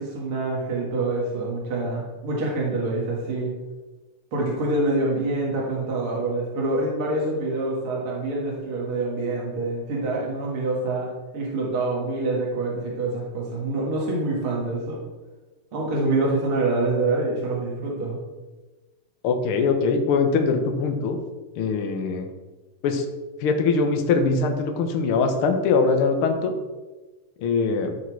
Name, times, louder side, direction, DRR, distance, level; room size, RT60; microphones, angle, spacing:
voice 1, 0.0-3.5 4.3-15.0 15.7-18.2, right 2 dB, 45° right, -4 dB, 2.2 m, -26 dB
voice 2, 19.2-21.2 21.6-22.3 22.8-23.0 23.4-26.5 27.4-27.9, left 4 dB, 75° left, 5 dB, 1.2 m, -22 dB
13.0 x 4.3 x 4.7 m, 1.2 s
omnidirectional pair, 3.8 m